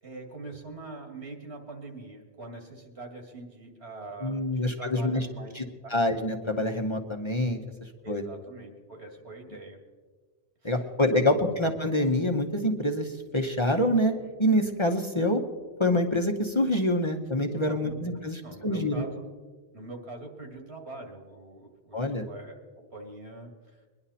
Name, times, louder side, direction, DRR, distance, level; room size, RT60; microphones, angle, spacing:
voice 1, 0.0-5.5 5.8-6.0 8.0-9.8 10.6-10.7 11.2-11.5 17.7-17.9 18.4-19.3 19.7-23.8, right 2 dB, 80° right, 3 dB, 2.5 m, -43 dB
voice 2, 4.2-5.3 5.5-5.6 5.9-7.6 8.1-8.2 10.6-14.1 14.4-15.4 15.8-19.0 21.9-22.2, left 1 dB, 30° left, 3 dB, 1.0 m, -26 dB
22.5 x 11.0 x 4.2 m, 1.4 s
omnidirectional pair, 1.1 m